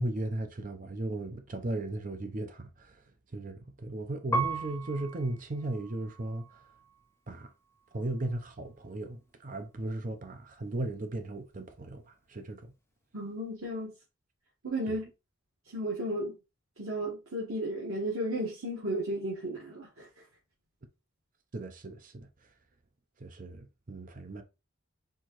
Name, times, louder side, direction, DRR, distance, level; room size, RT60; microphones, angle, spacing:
voice 1, 0.0-3.0 3.3-6.6 7.3-7.5 7.9-12.7 14.9-15.0 21.5-22.3 23.2-24.4, right 2 dB, 40° right, 0.6 m, -36 dB
Piano, 4.3-7.1 7.7-8.4, right 3 dB, 10° left, 0.4 m, -37 dB
voice 2, 13.1-13.9 14.6-15.1 15.7-16.4 16.8-20.1, right 1 dB, 90° right, 1.4 m, -34 dB
4.5 x 3.5 x 3.0 m
head